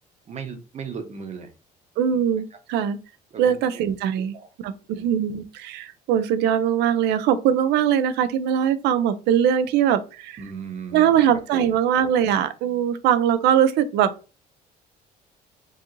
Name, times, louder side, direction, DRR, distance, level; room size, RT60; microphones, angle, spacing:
voice 1, 0.3-1.5 3.3-3.6 4.3-4.5 4.9-5.1 10.4-11.2 11.5-11.8, right 6 dB, 40° right, 0.9 m, -36 dB
voice 2, 2.0-3.0 3.4-4.3 4.6-10.4 10.9-14.1, right 9 dB, 85° right, 0.5 m, -21 dB
4.8 x 2.5 x 3.0 m
cardioid pair, 110°, 17 cm